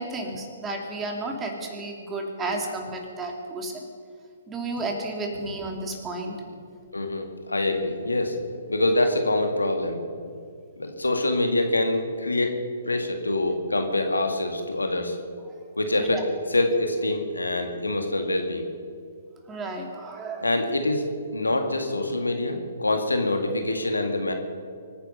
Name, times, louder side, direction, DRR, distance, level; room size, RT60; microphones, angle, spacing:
voice 1, 0.0-3.9 4.5-6.3 16.0-16.2 19.5-20.5, right 2 dB, 15° right, 2 dB, 2.7 m, -32 dB
voice 2, 6.9-10.3 10.8-12.6 12.9-15.2 15.8-16.2 16.5-18.7 20.4-24.3, left 2 dB, 90° left, 5 dB, 2.1 m, -25 dB
24.5 x 10.0 x 5.7 m, 2.3 s
figure-of-eight pair, 125°, 0 cm